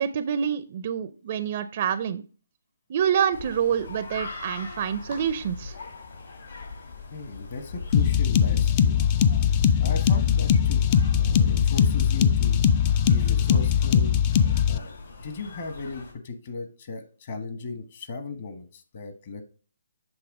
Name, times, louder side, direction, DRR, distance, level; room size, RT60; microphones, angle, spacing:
voice 1, 0.0-2.2 2.9-5.8, right 8 dB, 40° right, 13 dB, 0.4 m, -27 dB
sound 1, 3.3-16.1, left 4 dB, 65° left, 2.8 m, -37 dB
voice 2, 7.1-9.0 9.8-10.8 11.1-12.6 13.0-14.2 14.7-19.4, left 4 dB, 45° left, 8 dB, 1.3 m, -36 dB
sound 2, 7.9-14.8, left 8 dB, 25° left, 0.4 m, -21 dB
8.0 x 3.5 x 4.8 m, 0.37 s
hypercardioid pair, 155°, 0 cm